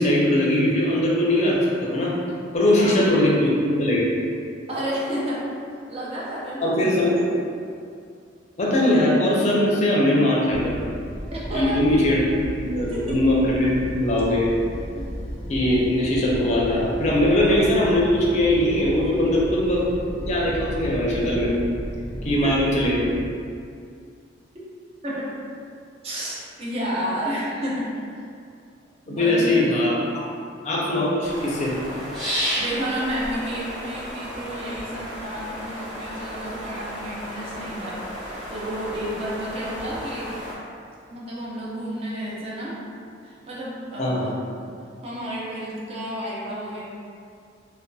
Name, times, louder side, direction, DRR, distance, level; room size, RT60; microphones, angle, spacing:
voice 1, 0.0-2.2 2.5-4.1 6.6-7.3 8.6-10.8 11.5-12.2 12.6-14.5 15.5-19.9 20.3-21.5 22.2-23.1 29.1-30.3 30.6-31.7 44.0-44.2, left 1 dB, 40° left, -4 dB, 0.5 m, -21 dB
voice 2, 4.7-5.4 5.9-7.1 11.3-11.8 12.9-13.1 14.9-15.0 19.2-19.3 22.4-22.5 25.0-25.3 26.0-28.1 29.1-29.7 32.5-40.3 41.1-42.8 43.2-44.4 45.0-46.8, equal, 35° right, -7 dB, 0.5 m, -31 dB
sound 1, 10.5-23.3, equal, 80° right, 0.8 m, -34 dB
sound 2, 31.2-40.5, equal, ahead, 0.9 m, -33 dB
2.6 x 2.2 x 2.2 m, 2.4 s
head